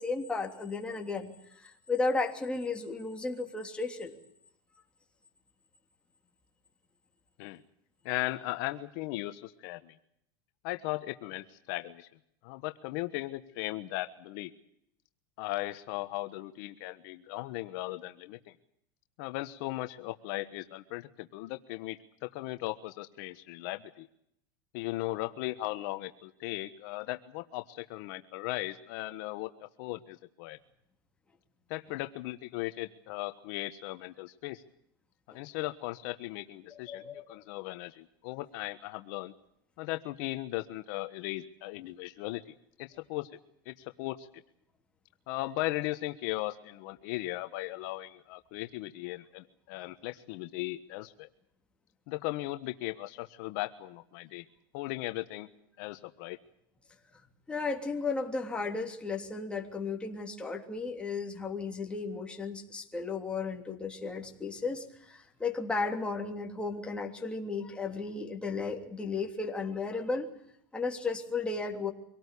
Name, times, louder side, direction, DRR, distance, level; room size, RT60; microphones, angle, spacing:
voice 1, 0.0-4.2 36.7-37.4 57.5-70.3 70.7-71.9, left 4 dB, 10° left, 2 dB, 3.2 m, -34 dB
voice 2, 8.0-9.9 10.6-12.1 12.4-14.5 15.4-18.5 19.2-24.1 24.7-30.6 31.7-34.6 35.3-39.3 39.8-43.3 43.6-44.3 45.3-51.3 52.1-54.4 54.7-55.5 55.8-56.4, left 18 dB, 60° left, 9 dB, 1.3 m, -37 dB
25.0 x 18.0 x 8.4 m, 0.74 s
supercardioid pair, 140°, 12 cm